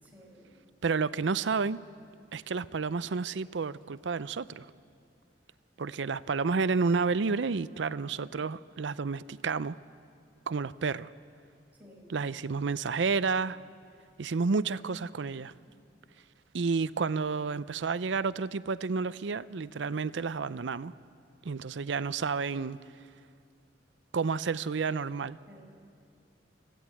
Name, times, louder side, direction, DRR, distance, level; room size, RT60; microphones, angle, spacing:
voice 1, 0.0-0.6 11.8-12.1 25.5-25.6, equal, 10° right, 4.9 m, -54 dB
voice 2, 0.8-1.8 2.3-4.7 5.8-9.8 10.5-11.1 12.1-13.6 14.2-15.5 16.5-20.9 21.4-22.8 24.1-25.4, right 4 dB, 80° right, 0.5 m, -30 dB
25.0 x 15.5 x 8.4 m
head